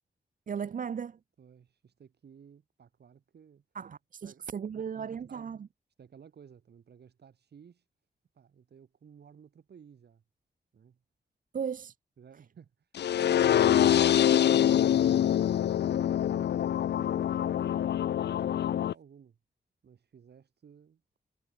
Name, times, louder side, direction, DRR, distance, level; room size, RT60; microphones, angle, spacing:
voice 1, 0.5-1.2 3.7-5.7 11.5-11.9, right 7 dB, 50° right, 0.7 m, -36 dB
voice 2, 1.4-3.6 4.2-4.5 4.7-5.5 6.0-7.8 8.3-10.2 10.7-11.0 12.2-12.7 13.1-14.3 15.9-19.4 19.8-21.0, right 7 dB, 70° right, 4.9 m, -56 dB
sound 1, 13.0-18.9, left 10 dB, 80° left, 0.5 m, -25 dB
wide cardioid pair, 150°, 18 cm